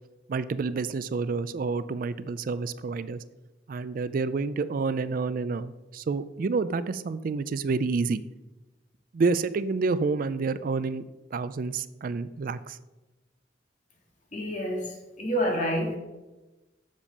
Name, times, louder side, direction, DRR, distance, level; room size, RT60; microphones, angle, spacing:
voice 1, 0.3-3.2 3.7-8.2 9.1-11.0 11.3-12.8, right 4 dB, 50° right, 15 dB, 0.4 m, -29 dB
voice 2, 14.3-16.0, equal, 45° left, 0 dB, 2.2 m, -28 dB
7.3 x 7.1 x 5.3 m, 1.1 s
head